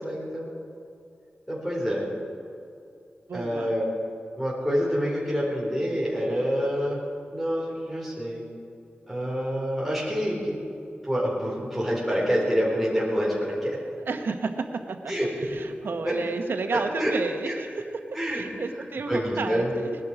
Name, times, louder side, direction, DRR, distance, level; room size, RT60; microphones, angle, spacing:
voice 1, 0.0-0.5 1.5-2.0 3.3-3.8 4.4-7.0 7.3-8.4 9.1-10.6 11.0-13.8 15.1-15.3 16.0-16.1 16.7-17.1 18.1-18.4 19.1-19.7, equal, ahead, -5 dB, 4.4 m, -27 dB
voice 2, 3.3-3.8 14.1-15.1 15.5-18.0 18.3-20.0, right 4 dB, 85° right, 6 dB, 1.1 m, -31 dB
20.0 x 11.5 x 5.0 m, 2.4 s
wide cardioid pair, 95°, 4 cm